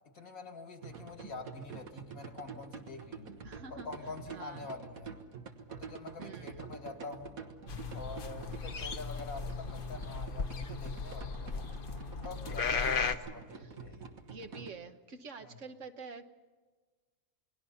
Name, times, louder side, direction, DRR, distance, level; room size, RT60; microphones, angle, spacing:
voice 1, 0.1-3.3 3.7-5.2 5.7-7.4 7.9-11.7 12.2-14.1 15.4-15.6, left 3 dB, 85° left, 5 dB, 2.7 m, -46 dB
sound 1, 0.8-14.7, right 5 dB, 80° right, 1.9 m, -47 dB
voice 2, 3.4-3.9 4.3-4.8 6.2-6.6 12.6-13.1 13.6-13.7 14.3-16.3, right 4 dB, 60° right, 7 dB, 1.5 m, -47 dB
sound 2, 7.7-13.1, left 5 dB, 45° left, 0.9 m, -36 dB
29.0 x 20.5 x 5.7 m, 1.3 s
omnidirectional pair, 1.4 m